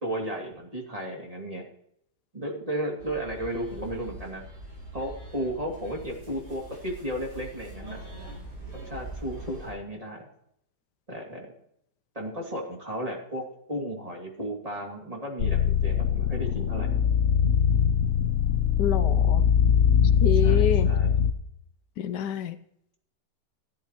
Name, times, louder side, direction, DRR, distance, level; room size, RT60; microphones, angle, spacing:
voice 1, 0.0-1.6 2.3-4.5 4.9-8.0 8.8-10.2 11.1-11.5 12.1-16.9 20.3-21.1, equal, 20° right, -1 dB, 2.5 m, -34 dB
sound 1, 3.0-9.7, right 2 dB, 70° right, 5.7 m, -43 dB
sound 2, 15.4-21.3, left 8 dB, 55° left, 0.9 m, -22 dB
voice 2, 18.8-19.4 20.2-20.9 22.0-22.6, left 8 dB, 75° left, 12 dB, 1.2 m, -27 dB
16.0 x 11.5 x 3.0 m, 0.74 s
omnidirectional pair, 1.8 m